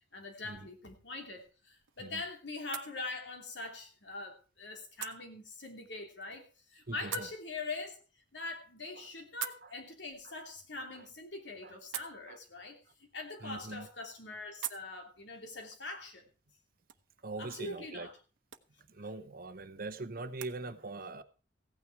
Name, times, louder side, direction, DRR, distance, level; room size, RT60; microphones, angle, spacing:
voice 1, 0.1-8.0 8.3-12.8 13.1-16.3 17.4-18.1 19.0-19.1, left 3 dB, 70° left, 2.9 m, -43 dB
sound 1, 1.1-20.6, right 12 dB, 90° right, 0.9 m, -50 dB
voice 2, 6.9-7.3 9.0-9.1 9.6-9.7 10.2-10.4 10.9-11.1 11.6-11.7 12.3-12.4 13.4-13.9 17.2-18.1 18.8-21.2, right 3 dB, 50° right, 0.9 m, -42 dB
15.5 x 9.2 x 4.6 m
head